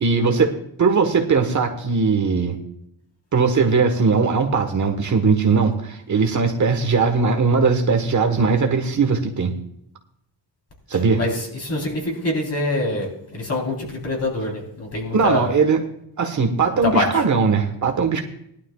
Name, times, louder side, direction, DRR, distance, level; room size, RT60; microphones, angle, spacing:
voice 1, 0.0-2.6 3.3-9.5 10.9-11.2 15.1-15.8 16.2-18.2, right 4 dB, 45° right, 4 dB, 1.3 m, -19 dB
voice 2, 11.2-15.5 16.8-17.1, left 2 dB, 35° left, 0 dB, 3.8 m, -25 dB
19.5 x 11.5 x 2.4 m, 0.74 s
wide cardioid pair, 155°, 42 cm